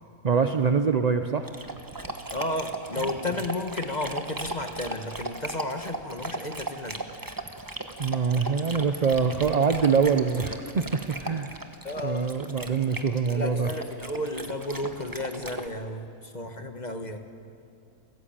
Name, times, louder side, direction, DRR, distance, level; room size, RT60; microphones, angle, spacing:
voice 1, 0.2-1.5 8.0-11.6 12.0-13.7, right 5 dB, 45° right, 7 dB, 0.5 m, -24 dB
Dog, 1.4-15.7, right 2 dB, 15° right, 1.0 m, -38 dB
voice 2, 2.3-7.1 11.8-12.4 13.3-17.2, left 1 dB, 30° left, 6 dB, 1.3 m, -33 dB
29.0 x 14.0 x 8.8 m, 2.4 s
omnidirectional pair, 1.6 m